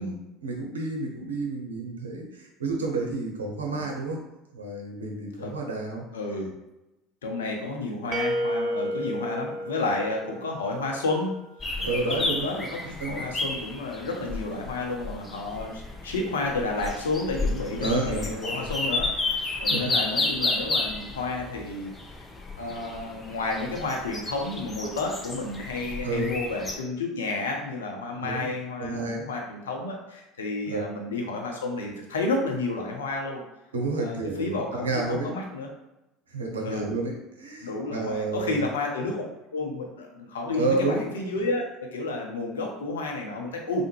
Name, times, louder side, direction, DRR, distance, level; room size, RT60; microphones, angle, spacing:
voice 1, 0.0-4.2 4.5-6.0 11.8-12.5 13.0-13.3 17.8-18.7 19.7-19.9 26.0-26.3 28.2-28.5 28.8-29.3 30.7-30.8 33.7-35.3 36.3-38.7 40.5-41.0, right 3 dB, 80° right, 1 dB, 0.6 m, -30 dB
voice 2, 6.1-6.5 7.2-11.3 11.9-19.1 19.6-21.9 22.6-33.4 34.0-35.7 36.6-36.9 37.6-39.2 39.5-41.6 41.9-43.9, left 2 dB, 75° left, 1 dB, 0.6 m, -31 dB
sound 1, 8.1-11.0, equal, 35° right, 0.3 m, -31 dB
sound 2, 11.6-26.8, left 2 dB, 20° left, 0.5 m, -32 dB
3.4 x 2.1 x 3.1 m, 0.97 s
figure-of-eight pair, 70°, 0 cm